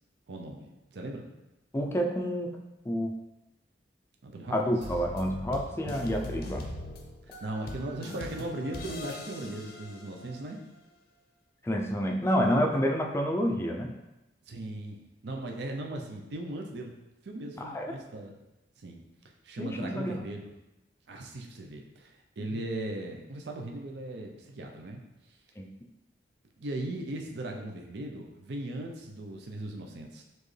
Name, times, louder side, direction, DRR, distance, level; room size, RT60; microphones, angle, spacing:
voice 1, 0.3-1.3 4.2-4.7 7.2-10.6 14.5-17.0 17.2-18.3 18.8-19.0 19.4-20.5 21.1-25.0 26.6-30.2, right 1 dB, 70° right, 2 dB, 0.6 m, -38 dB
voice 2, 1.7-2.5 2.9-3.1 4.5-6.6 11.6-13.9 17.6-17.9 19.6-20.2 22.5-22.6 25.6-25.7, equal, 15° left, 1 dB, 0.4 m, -28 dB
sound 1, 4.8-10.6, left 1 dB, 60° left, 0.6 m, -41 dB
4.4 x 2.9 x 3.2 m, 0.97 s
head